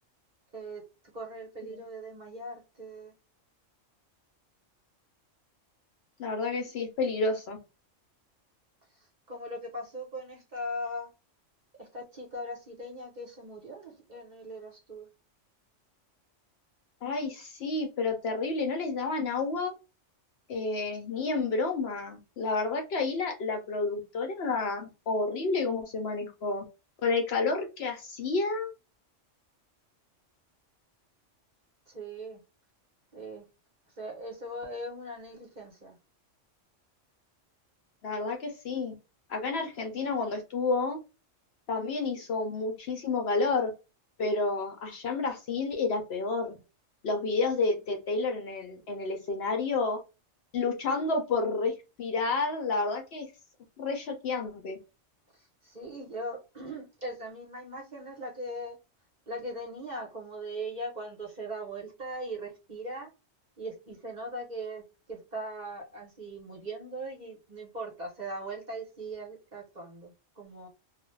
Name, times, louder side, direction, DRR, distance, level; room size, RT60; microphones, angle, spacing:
voice 1, 0.5-0.8 1.1-3.1 8.9-11.1 11.8-15.1 31.9-32.4 33.1-33.5 34.0-36.0 55.3-58.8 59.3-63.1 63.6-70.7, right 1 dB, 40° right, 0 dB, 0.8 m, -40 dB
voice 2, 6.2-7.6 17.0-19.7 20.5-26.6 27.0-28.7 38.0-38.9 39.3-41.0 41.7-43.7 44.2-46.6 47.0-50.0 50.5-53.3 53.8-54.8, left 3 dB, 60° left, 3 dB, 0.8 m, -30 dB
2.4 x 2.1 x 3.1 m, 0.29 s
omnidirectional pair, 1.3 m